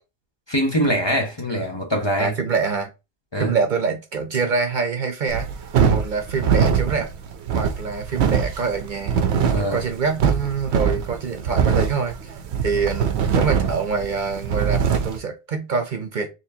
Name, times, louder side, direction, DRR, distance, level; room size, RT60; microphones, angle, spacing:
voice 1, 0.5-2.3 3.3-3.6 9.5-9.8, equal, 25° left, 0.9 m, -23 dB
voice 2, 2.2-2.9 3.4-5.5 5.9-7.1 7.5-9.2 9.6-16.3, right 5 dB, 50° right, 0.8 m, -25 dB
sound 1, 5.3-15.2, right 7 dB, 90° right, 0.9 m, -22 dB
4.3 x 3.3 x 2.7 m
omnidirectional pair, 1.1 m